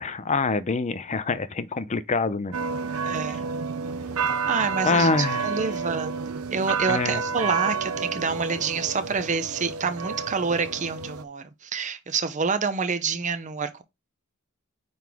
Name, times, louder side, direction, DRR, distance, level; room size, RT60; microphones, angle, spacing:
voice 1, 0.0-2.5 4.8-5.5 6.9-7.2, left 4 dB, 30° left, 0.5 m, -25 dB
sound 1, 2.5-11.2, right 5 dB, 85° right, 0.7 m, -30 dB
voice 2, 3.0-3.4 4.5-13.8, right 5 dB, 35° right, 0.7 m, -28 dB
9.1 x 4.0 x 3.5 m
head